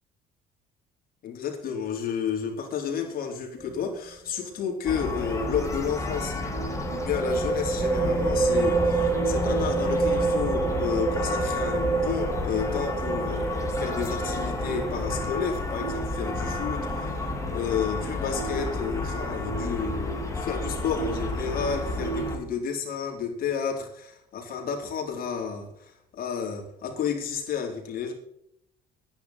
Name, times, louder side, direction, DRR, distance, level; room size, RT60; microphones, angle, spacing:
voice 1, 1.2-6.4 6.9-17.2 17.5-28.1, left 7 dB, 60° left, 1 dB, 4.1 m, -31 dB
sound 1, 3.6-3.9 4.1-4.2 6.7-18.1, right 3 dB, 10° right, 1.7 m, -28 dB
sound 2, 4.9-22.4, left 1 dB, 15° left, 3.0 m, -31 dB
11.0 x 10.5 x 5.9 m, 0.74 s
cardioid pair, 110°, 17 cm